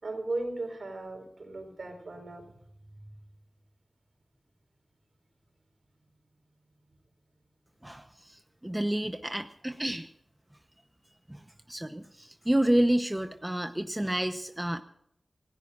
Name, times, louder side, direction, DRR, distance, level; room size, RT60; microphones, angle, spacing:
voice 1, 0.0-2.4, right 2 dB, 70° right, 4 dB, 4.6 m, -36 dB
voice 2, 7.8-10.1 11.3-11.4 11.7-14.8, right 1 dB, 10° right, 7 dB, 0.9 m, -29 dB
27.5 x 16.5 x 2.5 m, 0.77 s
wide cardioid pair, 85°, 0 cm